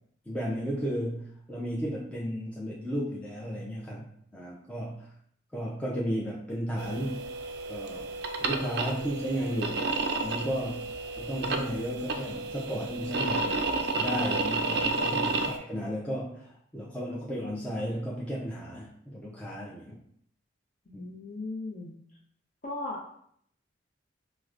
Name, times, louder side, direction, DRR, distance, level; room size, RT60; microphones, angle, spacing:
voice 1, 0.3-5.1 5.5-7.2 7.7-8.1 8.4-9.9 10.2-10.9 11.2-13.6 13.9-16.5 16.7-20.0 20.9-21.0, equal, 5° left, -6 dB, 0.4 m, -34 dB
sound 1, 6.8-15.6, right 3 dB, 60° right, 0.3 m, -31 dB
voice 2, 15.2-15.5 20.9-21.9 22.6-23.0, left 2 dB, 45° left, -2 dB, 0.7 m, -38 dB
4.6 x 2.1 x 2.4 m, 0.66 s
head